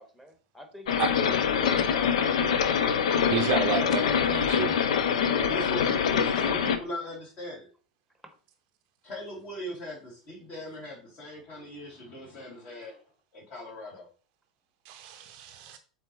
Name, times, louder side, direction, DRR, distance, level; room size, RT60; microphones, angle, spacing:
voice 1, 0.0-2.6 5.2-5.5, right 1 dB, 5° left, 1.4 m, -45 dB
sound 1, 0.9-6.8, left 7 dB, 60° left, 0.6 m, -25 dB
voice 2, 3.3-4.8 14.9-15.8, right 8 dB, 45° right, 0.6 m, -30 dB
voice 3, 5.5-7.7 9.0-13.0 13.3-14.1, equal, 35° left, 2.9 m, -39 dB
7.3 x 4.1 x 3.1 m
figure-of-eight pair, 85°, 4 cm